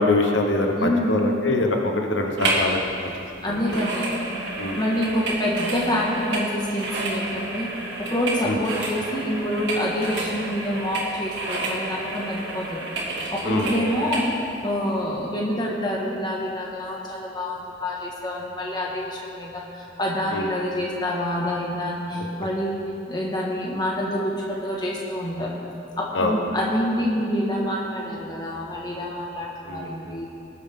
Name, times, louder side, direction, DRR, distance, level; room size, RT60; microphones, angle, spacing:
voice 1, 0.0-3.1 3.5-3.8 4.6-4.8 8.4-8.6 13.4-13.9 20.3-20.5 26.1-26.3 29.7-30.2, left 2 dB, 90° left, 2 dB, 1.1 m, -24 dB
voice 2, 0.8-1.2 3.4-4.1 4.7-7.7 8.1-12.9 13.3-14.3 14.6-22.8 23.1-25.5 26.0-30.3, equal, 25° left, -3 dB, 1.7 m, -27 dB
sound 1, 2.4-2.7 3.0-14.3 14.8-14.9, right 2 dB, 70° right, 2.5 m, -30 dB
19.5 x 8.0 x 3.7 m, 2.8 s
head